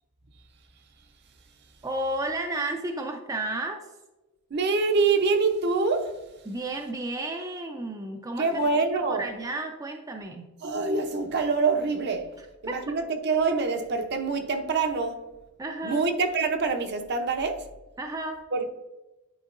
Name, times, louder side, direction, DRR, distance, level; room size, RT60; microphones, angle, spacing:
voice 1, 1.8-3.8 6.4-8.6 9.1-10.5 12.4-12.8 15.6-16.0 18.0-18.4, right 2 dB, 15° right, 0.4 m, -32 dB
voice 2, 4.5-6.1 8.4-9.2 10.6-12.3 12.6-15.2 15.8-17.6 18.5-18.7, right 4 dB, 50° right, 0.7 m, -25 dB
9.9 x 4.5 x 2.5 m
head